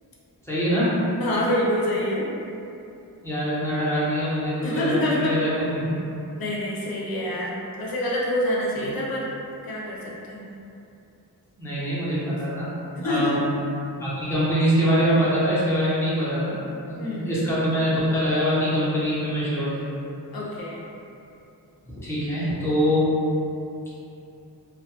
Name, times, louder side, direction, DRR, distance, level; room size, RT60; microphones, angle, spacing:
voice 1, 0.4-0.9 3.2-5.9 8.8-8.9 11.6-12.7 13.0-13.4 14.0-16.6 16.9-19.9 22.0-23.1, equal, 5° left, -11 dB, 0.8 m, -24 dB
voice 2, 1.2-2.3 4.6-5.4 6.4-9.3 9.6-10.0 10.3-10.4 13.0-13.4 17.0-17.3 20.3-20.8, left 1 dB, 60° left, -5 dB, 0.6 m, -26 dB
2.2 x 2.2 x 2.8 m, 2.7 s
wide cardioid pair, 80°, 41 cm